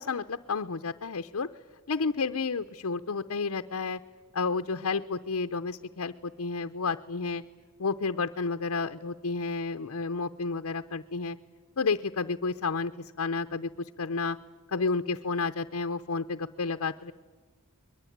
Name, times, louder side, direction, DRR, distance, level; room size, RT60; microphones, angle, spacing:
voice 1, 0.0-1.5 1.9-4.0 4.3-7.4 7.8-11.4 11.8-12.9 13.2-14.4 14.7-17.1, left 4 dB, 70° left, 7 dB, 0.7 m, -31 dB
22.5 x 22.0 x 9.3 m, 1.4 s
head